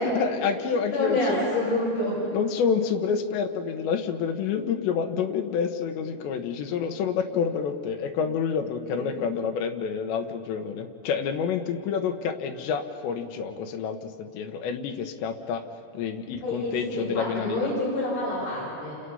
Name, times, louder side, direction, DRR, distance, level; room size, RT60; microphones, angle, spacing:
voice 1, 0.0-1.5 2.3-15.6 15.9-17.7, left 6 dB, 90° left, 6 dB, 3.5 m, -28 dB
voice 2, 0.7-2.1 16.4-18.9, left 1 dB, 75° left, -7 dB, 9.7 m, -27 dB
29.0 x 28.0 x 5.6 m, 2.6 s
omnidirectional pair, 4.9 m